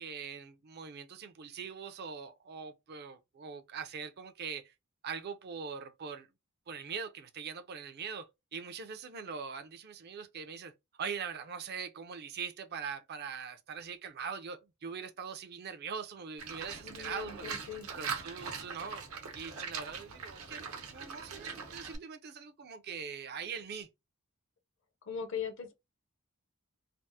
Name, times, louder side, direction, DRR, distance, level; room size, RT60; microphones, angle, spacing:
voice 1, 0.0-4.7 5.0-6.3 6.7-10.7 11.0-17.6 17.9-19.1 19.3-23.9, right 6 dB, 50° right, 0.4 m, -42 dB
Livestock farm animals working animals, 16.4-22.0, right 5 dB, 80° right, 0.9 m, -41 dB
voice 2, 16.8-17.9 25.1-25.7, left 7 dB, 60° left, 0.7 m, -40 dB
3.4 x 2.0 x 2.6 m
head